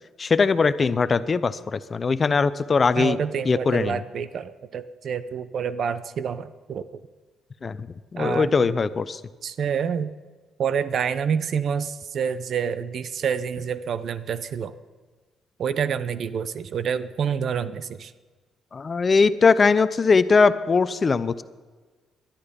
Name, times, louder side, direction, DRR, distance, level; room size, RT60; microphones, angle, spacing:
voice 1, 0.2-3.2 3.4-4.0 7.6-9.2 18.7-21.4, left 4 dB, 35° left, 14 dB, 0.7 m, -21 dB
voice 2, 3.0-6.9 8.2-8.7 9.4-10.1 10.6-14.8 15.6-18.1, right 7 dB, 60° right, 14 dB, 0.8 m, -28 dB
19.0 x 12.0 x 5.2 m, 1.4 s
cardioid pair, 90°, 0 cm